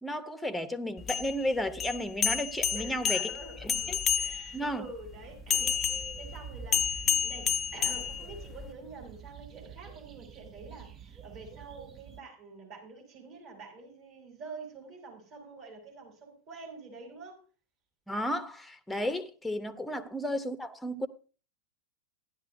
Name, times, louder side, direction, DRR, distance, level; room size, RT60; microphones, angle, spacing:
voice 1, 0.0-3.3 3.6-4.0 4.5-4.9 18.1-21.1, left 1 dB, 5° left, 0.9 m, -33 dB
sound 1, 1.0-4.7 5.5-8.7, left 8 dB, 25° left, 0.4 m, -30 dB
voice 2, 2.7-17.4 19.9-20.1, right 4 dB, 45° right, 4.7 m, -47 dB
sound 2, 5.0-12.2, right 9 dB, 25° right, 0.7 m, -49 dB
15.5 x 11.0 x 2.7 m
figure-of-eight pair, 90°, 0 cm